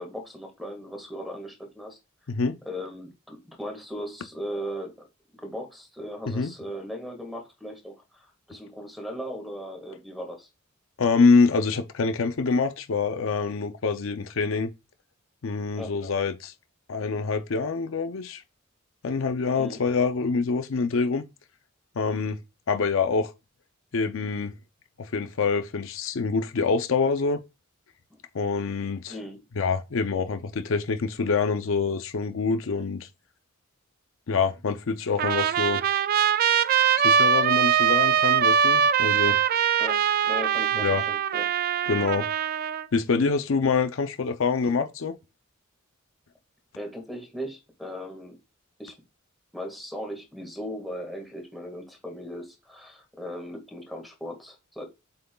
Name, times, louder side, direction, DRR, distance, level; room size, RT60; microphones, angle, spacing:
voice 1, 0.0-2.0 2.7-5.1 5.4-10.5 15.8-15.9 19.6-19.8 29.1-29.4 39.8-41.5 46.8-48.4 48.8-49.0 49.5-54.8, equal, ahead, 1.8 m, -38 dB
voice 2, 11.0-14.7 15.4-16.5 16.9-18.4 19.0-21.2 22.0-22.4 22.7-23.3 23.9-24.5 25.0-27.4 28.3-29.2 29.6-33.1 34.3-35.8 37.0-39.4 40.8-41.0 41.9-42.3 42.9-45.2, left 4 dB, 70° left, 0.5 m, -25 dB
Trumpet, 35.2-42.9, right 8 dB, 45° right, 0.3 m, -22 dB
7.6 x 5.7 x 2.3 m
head